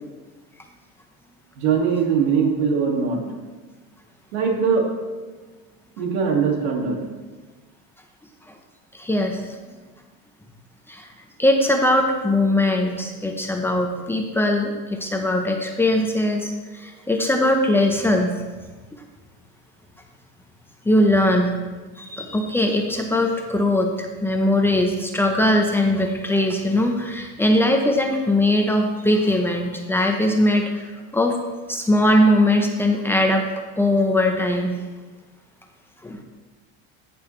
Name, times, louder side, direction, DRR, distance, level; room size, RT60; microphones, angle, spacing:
voice 1, 1.6-3.2 4.3-4.9 6.0-7.0, right 6 dB, 85° right, 1 dB, 2.3 m, -21 dB
voice 2, 8.9-9.4 10.9-11.1 11.4-18.4 20.8-21.5 22.0-30.9 31.1-31.4 31.7-33.4 33.8-34.8 36.0-36.2, left 1 dB, 5° left, 3 dB, 0.7 m, -20 dB
14.5 x 7.0 x 3.2 m, 1.3 s
cardioid pair, 145°, 32 cm